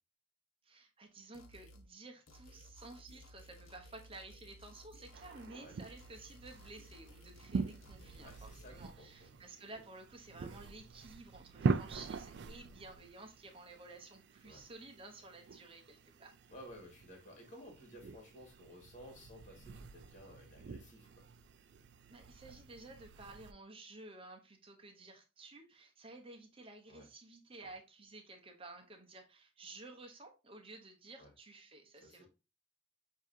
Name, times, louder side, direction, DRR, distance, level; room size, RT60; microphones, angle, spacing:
voice 1, 0.6-16.3 22.1-32.3, right 2 dB, 25° right, 0.8 m, -53 dB
sound 1, 1.3-1.9 2.3-5.6 5.8-8.7, equal, 80° left, 1.0 m, -57 dB
sound 2, 5.1-23.5, right 4 dB, 55° right, 0.4 m, -43 dB
voice 2, 8.2-9.3 14.4-14.6 16.5-21.3 26.9-27.1 27.6-27.7 31.2-31.3 31.9-32.3, equal, 35° left, 1.8 m, -55 dB
7.0 x 2.8 x 2.7 m
head